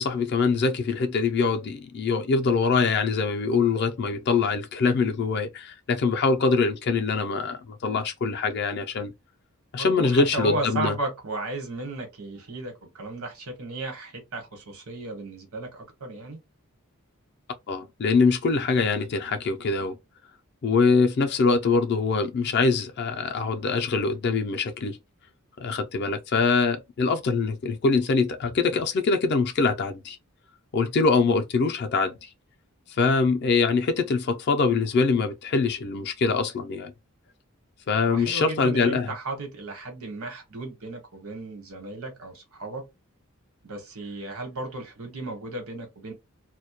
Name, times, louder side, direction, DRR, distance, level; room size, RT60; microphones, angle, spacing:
voice 1, 0.0-9.1 9.7-10.9 17.7-20.0 20.6-25.0 25.6-30.2 30.7-32.3 32.9-36.9 37.9-39.1, left 4 dB, 50° left, 0.3 m, -23 dB
voice 2, 9.8-16.4 38.0-42.8 43.6-46.1, right 2 dB, 80° right, 1.0 m, -34 dB
2.1 x 2.1 x 2.8 m
head